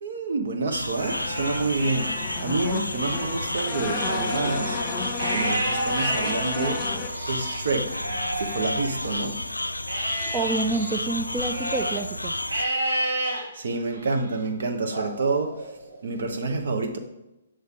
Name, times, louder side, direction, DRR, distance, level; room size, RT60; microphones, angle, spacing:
voice 1, 0.0-4.8 5.3-6.9 7.3-8.0 8.3-9.4 13.5-15.7 16.0-17.0, right 3 dB, 60° right, 1.1 m, -28 dB
sound 1, 0.7-12.6, left 1 dB, 85° left, 0.4 m, -32 dB
Livestock farm animals working animals, 0.8-2.4 2.8-9.4 9.9-12.0 12.5-13.4 13.9-14.4 14.9-16.0, right 1 dB, 80° right, 2.4 m, -31 dB
sound 2, 1.1-7.1, left 5 dB, 25° left, 1.1 m, -33 dB
voice 2, 10.3-12.4, right 3 dB, 20° right, 0.5 m, -28 dB
8.0 x 6.3 x 3.7 m
figure-of-eight pair, 130°, 0 cm